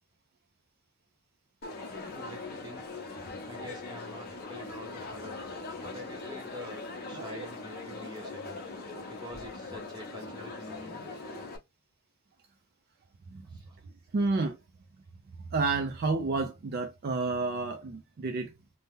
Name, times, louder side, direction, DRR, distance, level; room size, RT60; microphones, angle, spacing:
Crowd, 1.6-11.6, left 3 dB, 45° left, 0.6 m, -41 dB
voice 1, 2.0-3.0 3.4-5.4 5.8-6.8 7.1-8.6 9.1-11.1 13.5-13.8, left 1 dB, 20° right, 0.9 m, -46 dB
voice 2, 7.1-7.5 8.9-9.1 11.2-11.5 13.3-13.5 14.1-14.6 15.5-18.5, right 3 dB, 45° right, 0.3 m, -31 dB
2.7 x 2.0 x 3.5 m
head